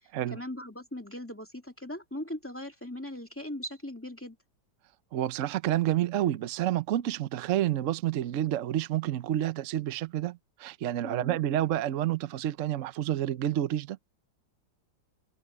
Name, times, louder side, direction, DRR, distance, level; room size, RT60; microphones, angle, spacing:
voice 1, 0.3-4.4 11.0-11.4, left 1 dB, 5° left, 2.3 m, -39 dB
voice 2, 5.1-14.0, right 12 dB, 60° right, 0.8 m, -29 dB
omnidirectional pair, 2.1 m